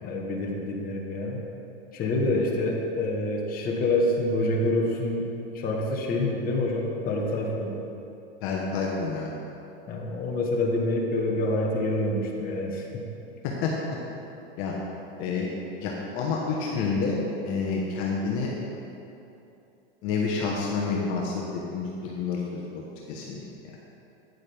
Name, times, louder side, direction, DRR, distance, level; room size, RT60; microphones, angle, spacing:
voice 1, 0.0-1.4 1.9-5.3 5.5-7.8 9.9-13.0, left 1 dB, 30° left, -1 dB, 1.4 m, -27 dB
voice 2, 8.4-9.3 13.4-13.7 14.6-14.7 15.2-15.5 15.8-18.5 20.0-23.7, left 4 dB, 45° left, -3 dB, 1.2 m, -29 dB
9.5 x 8.1 x 3.5 m, 2.8 s
supercardioid pair, 130°, 30 cm